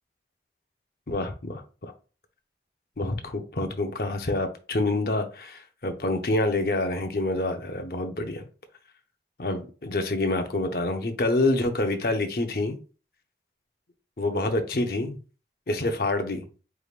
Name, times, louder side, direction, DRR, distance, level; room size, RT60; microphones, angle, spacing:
voice 1, 1.1-1.9 3.0-8.4 9.4-12.8 14.2-15.2 15.7-16.4, left 2 dB, 55° left, 0.7 m, -27 dB
4.7 x 3.4 x 2.4 m
head